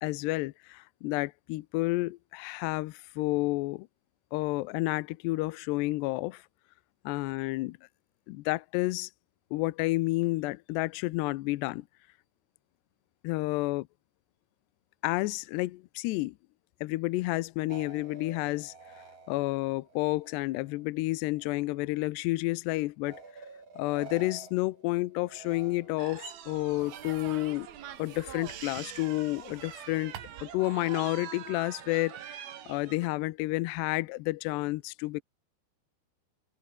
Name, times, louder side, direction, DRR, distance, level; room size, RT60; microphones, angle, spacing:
voice 1, 0.0-3.9 4.3-6.4 7.0-7.8 8.3-9.1 9.5-11.9 13.2-13.9 15.0-16.4 16.8-18.7 19.3-23.2 23.8-27.7 28.0-35.2, left 20 dB, 85° left, 2.5 m, -30 dB
sound 1, 17.7-20.9 21.2-22.0 23.0-26.3 26.8-27.5, right 4 dB, 30° right, 5.9 m, -51 dB
sound 2, 26.0-33.1, right 10 dB, 55° right, 3.6 m, -44 dB
sound 3, 26.8-30.6, right 10 dB, 85° right, 5.1 m, -49 dB
open air
omnidirectional pair, 5.7 m